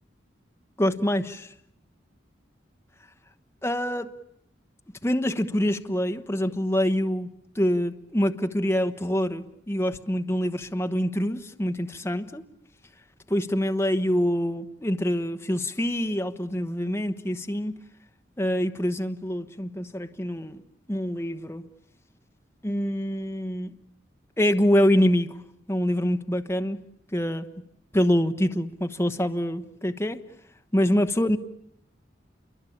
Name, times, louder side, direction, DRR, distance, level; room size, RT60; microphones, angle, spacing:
voice 1, 0.8-1.5 3.6-4.1 5.0-12.4 13.3-17.8 18.4-20.6 20.9-21.6 22.6-23.8 24.4-25.4 25.7-26.8 27.1-27.4 27.9-30.2 30.7-31.4, equal, 15° left, 7 dB, 1.1 m, -25 dB
28.0 x 23.0 x 8.7 m, 0.74 s
head